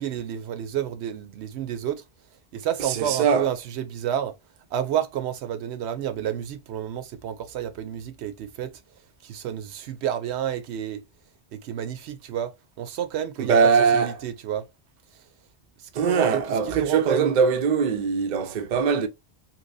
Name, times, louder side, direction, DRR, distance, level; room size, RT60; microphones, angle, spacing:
voice 1, 0.0-2.0 2.5-4.3 4.7-8.8 9.2-11.0 11.5-14.7 15.1-15.2 15.8-17.4, right 10 dB, 80° right, 0.8 m, -30 dB
voice 2, 2.8-3.5 13.4-14.1 15.9-19.1, right 6 dB, 55° right, 0.6 m, -21 dB
3.1 x 2.9 x 2.5 m
omnidirectional pair, 1.1 m